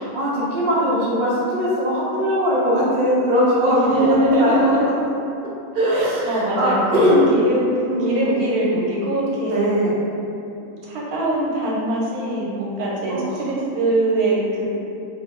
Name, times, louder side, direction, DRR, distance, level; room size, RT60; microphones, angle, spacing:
voice 1, 0.0-4.9 5.7-7.2 7.9-8.5 9.4-10.0 13.1-13.4, equal, 50° right, -7 dB, 0.6 m, -20 dB
voice 2, 3.7-4.9 5.9-7.7 8.1-9.8 10.8-14.7, right 1 dB, 85° right, -5 dB, 1.1 m, -22 dB
2.5 x 2.2 x 3.6 m, 2.7 s
omnidirectional pair, 1.5 m